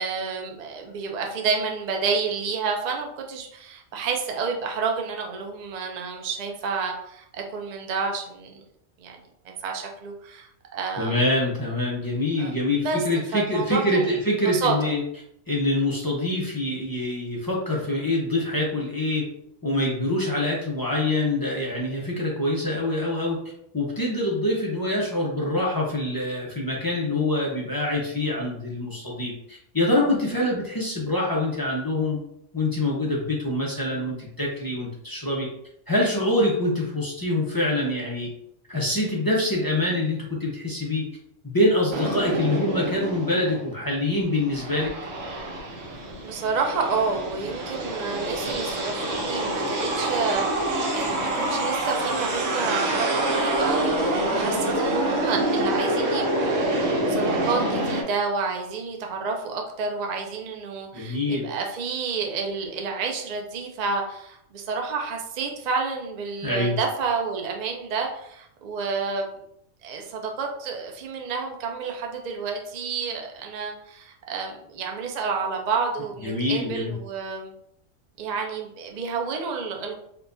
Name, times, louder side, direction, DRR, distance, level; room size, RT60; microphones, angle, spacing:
voice 1, 0.0-8.6 9.0-11.2 12.4-13.0 13.3-14.2 14.4-14.9 46.2-69.3 69.8-77.5 78.2-80.0, right 5 dB, 55° right, 2 dB, 0.4 m, -30 dB
voice 2, 11.0-15.0 15.5-19.3 19.6-23.4 23.7-32.2 32.5-35.5 35.9-38.3 38.7-41.1 41.4-44.9 60.9-61.4 66.4-66.8 76.2-76.9, left 1 dB, 25° left, -4 dB, 0.4 m, -25 dB
sound 1, 41.9-43.7 44.2-58.0, right 1 dB, 75° right, 1.1 m, -26 dB
4.4 x 2.2 x 2.5 m, 0.73 s
omnidirectional pair, 1.3 m